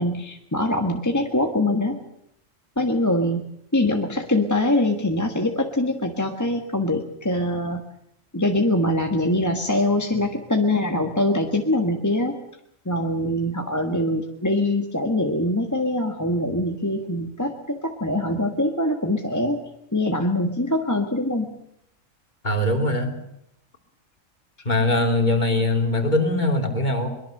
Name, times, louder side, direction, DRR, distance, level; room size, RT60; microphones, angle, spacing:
voice 1, 0.0-2.0 2.8-3.4 3.7-7.8 8.3-12.4 12.8-19.6 19.9-21.5, left 1 dB, 15° left, 3 dB, 1.5 m, -23 dB
voice 2, 22.4-23.2 24.6-27.1, left 1 dB, 35° left, 3 dB, 3.3 m, -21 dB
23.5 x 22.0 x 6.7 m, 0.76 s
omnidirectional pair, 1.4 m